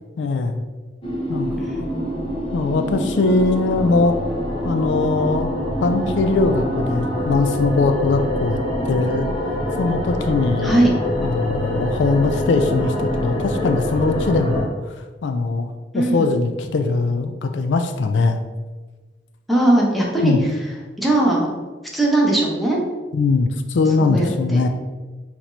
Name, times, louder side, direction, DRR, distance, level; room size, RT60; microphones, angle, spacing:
voice 1, 0.2-0.6 1.3-1.5 2.5-4.2 4.6-5.5 5.8-9.3 9.8-10.9 11.2-15.0 15.2-18.4 20.2-20.4 23.1-24.7, left 3 dB, 80° left, 7 dB, 0.4 m, -21 dB
sound 1, 1.0-14.6, left 1 dB, 30° left, 0.8 m, -25 dB
voice 2, 1.6-2.3 10.6-10.9 15.9-16.3 19.5-20.3 21.0-21.5 21.9-22.8 24.0-24.6, right 1 dB, ahead, -4 dB, 0.8 m, -19 dB
5.8 x 3.0 x 2.6 m, 1.3 s
head